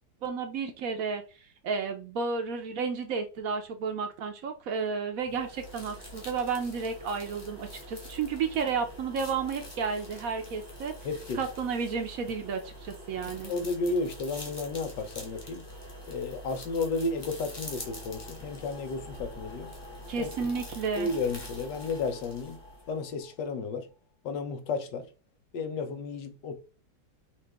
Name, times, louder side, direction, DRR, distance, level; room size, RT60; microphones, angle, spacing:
voice 1, 0.2-1.2 1.6-10.9 11.3-13.5 20.1-21.1, right 5 dB, 65° right, 1.0 m, -32 dB
sound 1, 5.2-23.0, equal, 15° left, 1.1 m, -45 dB
voice 2, 11.0-11.4 13.2-15.7 16.1-19.7 20.2-20.5 21.0-22.6 22.9-23.9 24.2-25.1 25.5-26.6, left 3 dB, 90° left, 1.5 m, -33 dB
sound 2, 17.6-24.0, left 5 dB, 70° left, 1.5 m, -52 dB
5.8 x 2.5 x 3.4 m
omnidirectional pair, 1.8 m